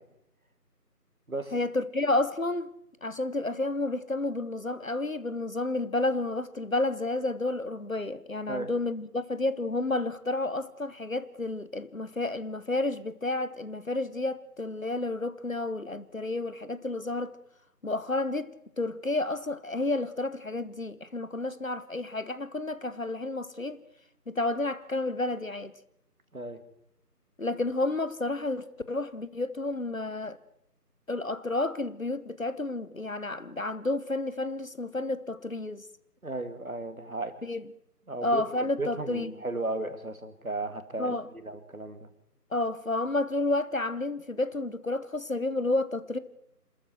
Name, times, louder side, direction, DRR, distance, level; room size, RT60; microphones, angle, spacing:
voice 1, 1.5-2.7 3.0-17.4 17.8-23.8 24.3-25.7 27.4-30.4 31.1-35.8 37.4-37.6 38.2-39.3 41.0-41.3 42.5-46.2, left 2 dB, 55° left, 1.2 m, -31 dB
voice 2, 36.2-37.3 38.1-38.4 38.8-41.1 41.4-42.1, right 2 dB, 60° right, 2.4 m, -35 dB
27.0 x 13.5 x 7.8 m
figure-of-eight pair, 170°, 49 cm